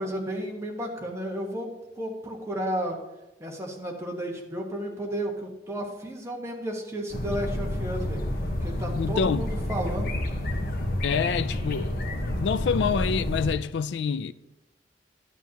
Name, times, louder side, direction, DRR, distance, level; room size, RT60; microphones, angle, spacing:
voice 1, 0.0-3.0 3.4-8.2 8.6-10.1, equal, 15° right, 1.3 m, -33 dB
sound 1, 7.1-13.5, left 1 dB, 55° left, 1.1 m, -29 dB
voice 2, 9.0-9.5 11.0-12.0 12.3-14.3, left 6 dB, 75° left, 0.4 m, -27 dB
12.0 x 9.3 x 2.9 m
head